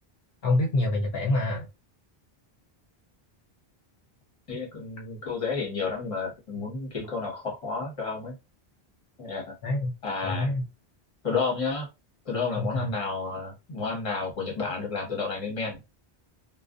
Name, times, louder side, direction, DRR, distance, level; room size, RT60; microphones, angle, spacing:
voice 1, 0.4-1.6 9.6-9.9 10.2-10.6 12.6-12.9, left 2 dB, 70° left, 0.8 m, -26 dB
voice 2, 4.5-8.3 9.2-9.5 10.0-10.5 11.2-11.9 12.2-15.8, left 4 dB, 35° left, 1.0 m, -31 dB
2.4 x 2.1 x 2.4 m
omnidirectional pair, 1.0 m